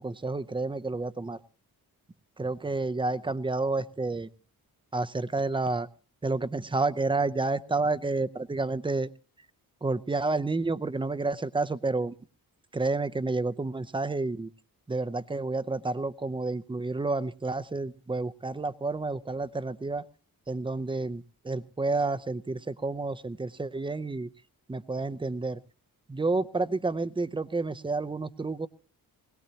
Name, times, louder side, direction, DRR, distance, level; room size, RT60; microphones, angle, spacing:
voice 1, 0.0-1.4 2.4-4.3 4.9-5.9 6.2-9.1 9.8-12.2 12.7-14.5 14.9-20.0 20.5-24.3 24.7-25.6 26.1-28.7, right 3 dB, 15° right, 15 dB, 0.6 m, -30 dB
21.5 x 18.0 x 2.9 m, 0.38 s
wide cardioid pair, 165°, 37 cm